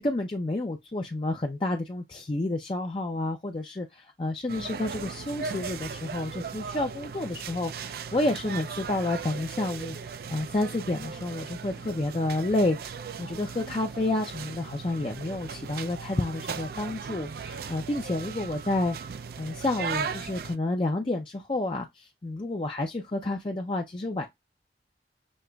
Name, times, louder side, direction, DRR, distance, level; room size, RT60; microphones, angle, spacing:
voice 1, 0.0-19.0 19.4-24.3, left 2 dB, 30° left, 0.5 m, -30 dB
sound 1, 4.5-20.6, right 6 dB, 55° right, 0.4 m, -37 dB
6.3 x 2.9 x 2.2 m
head